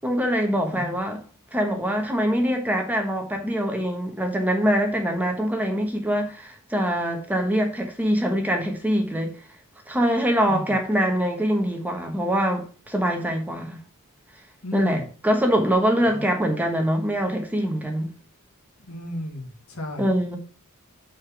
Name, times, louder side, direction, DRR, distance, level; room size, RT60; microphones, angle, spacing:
voice 1, 0.0-1.2 1.5-9.3 9.9-13.8 14.7-18.1 20.0-20.4, equal, 5° right, 1.2 m, -24 dB
voice 2, 10.5-10.8 14.6-15.1 16.0-16.3 18.8-20.4, left 1 dB, 85° left, 1.9 m, -35 dB
5.5 x 5.0 x 6.0 m
head